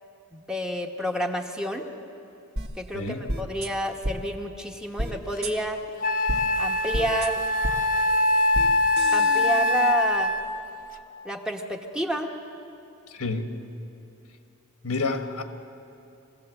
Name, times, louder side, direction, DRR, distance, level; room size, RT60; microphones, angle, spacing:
voice 1, 0.3-1.9 2.8-5.8 6.6-7.4 9.1-10.3 11.2-12.3, equal, 5° right, 2 dB, 1.1 m, -29 dB
sound 1, 2.6-2.7 3.3-3.7 4.0-4.1 5.0-5.1 5.4-5.5 6.3-6.4 6.9-7.3 7.6-7.7 8.5-8.7 9.0-9.9, right 1 dB, 50° right, 1.4 m, -30 dB
voice 2, 2.9-3.2 13.1-13.5 14.8-15.4, left 3 dB, 75° left, 6 dB, 1.5 m, -29 dB
Wind instrument woodwind instrument, 5.4-5.5 6.0-10.7, left 2 dB, 40° left, 0.9 m, -23 dB
22.5 x 16.0 x 7.8 m, 2.8 s
head